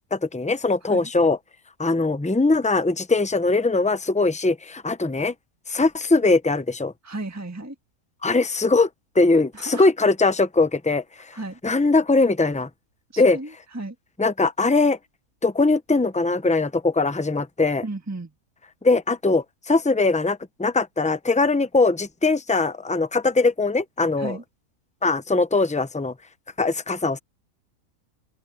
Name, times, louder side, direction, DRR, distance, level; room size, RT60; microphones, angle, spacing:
voice 1, 0.1-1.4 1.8-5.3 5.7-6.9 8.2-8.9 9.1-11.4 11.6-12.7 13.2-13.4 14.2-15.0 15.4-17.8 18.8-24.4 25.0-26.1 26.6-27.2, left 3 dB, 10° left, 0.3 m, -21 dB
voice 2, 7.0-7.7 9.5-9.9 11.3-11.6 13.1-13.9 17.8-18.3 24.2-24.4, right 2 dB, 10° right, 1.5 m, -34 dB
open air
omnidirectional pair, 1.6 m